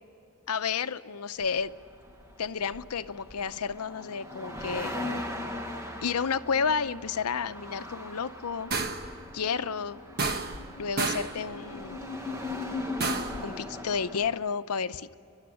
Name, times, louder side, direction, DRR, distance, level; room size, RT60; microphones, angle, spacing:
voice 1, 0.5-1.7 2.4-4.9 6.0-8.7 9.3-10.0 10.8-12.0 13.4-15.1, left 6 dB, 90° left, 13 dB, 0.7 m, -31 dB
sound 1, 1.4-14.4, left 2 dB, 15° right, 1.4 m, -39 dB
sound 2, 8.7-9.2 10.2-10.7 11.0-11.4 13.0-13.4, right 4 dB, 45° right, 1.2 m, -30 dB
29.0 x 12.0 x 9.9 m, 2.7 s
head